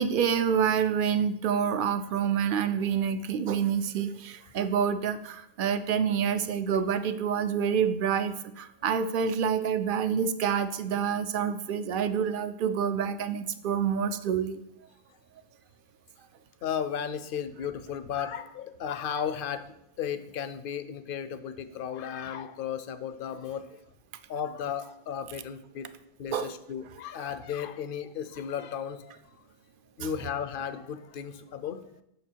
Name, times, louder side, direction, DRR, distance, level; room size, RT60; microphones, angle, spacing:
voice 1, 0.0-14.6 26.3-26.5 30.0-30.1, right 7 dB, 60° right, 11 dB, 0.7 m, -27 dB
voice 2, 16.6-23.7 24.3-25.9 26.2-29.2 30.0-31.8, left 8 dB, 65° left, 11 dB, 0.7 m, -35 dB
6.7 x 5.9 x 4.5 m, 0.80 s
omnidirectional pair, 1.0 m